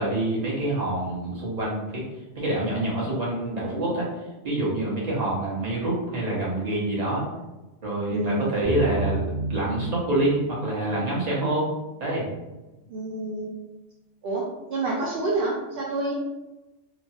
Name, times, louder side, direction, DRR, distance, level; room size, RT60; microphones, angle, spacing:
voice 1, 0.0-2.0 2.3-4.0 4.4-7.2 7.8-11.7 12.0-12.2, right 1 dB, 35° right, -6 dB, 0.9 m, -26 dB
voice 2, 8.1-8.6 12.9-13.5 14.2-14.4 14.7-16.1, right 2 dB, 65° right, -3 dB, 0.6 m, -28 dB
sound 1, 8.6-12.3, right 2 dB, 30° left, 0.4 m, -33 dB
3.1 x 2.1 x 2.7 m, 1.1 s
omnidirectional pair, 1.3 m